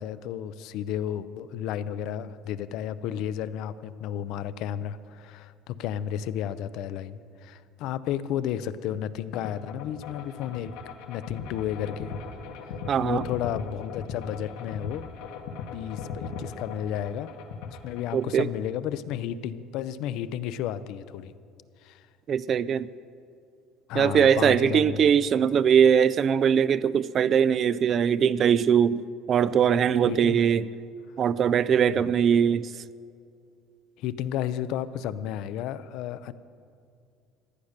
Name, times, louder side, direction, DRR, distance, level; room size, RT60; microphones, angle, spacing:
voice 1, 0.0-10.7 11.1-12.1 12.7-15.1 15.7-17.3 17.6-21.3 21.8-22.0 23.9-25.0 30.1-30.4 31.9-32.1 34.0-36.3, left 10 dB, 60° left, 14 dB, 0.5 m, -32 dB
sound 1, 9.3-18.2, left 5 dB, 80° left, 1.4 m, -38 dB
voice 2, 12.9-13.2 18.1-18.5 22.3-22.9 23.9-30.6 31.2-32.7, right 8 dB, 35° right, 18 dB, 0.3 m, -21 dB
15.0 x 10.5 x 6.6 m, 2.4 s
cardioid pair, 150°, 0 cm